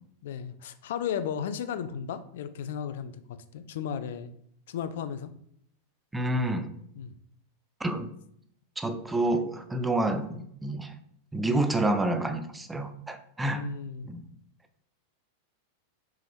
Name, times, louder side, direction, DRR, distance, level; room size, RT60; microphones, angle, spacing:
voice 1, 0.2-3.1 3.5-4.3 4.7-5.3 7.0-7.1 13.5-14.1, left 8 dB, 55° left, 11 dB, 0.3 m, -34 dB
voice 2, 6.1-6.7 7.8-8.1 8.8-10.9 11.3-13.7 14.1-14.2, right 1 dB, 10° right, 8 dB, 0.4 m, -28 dB
5.4 x 3.0 x 3.3 m, 0.69 s
figure-of-eight pair, 90°, 0 cm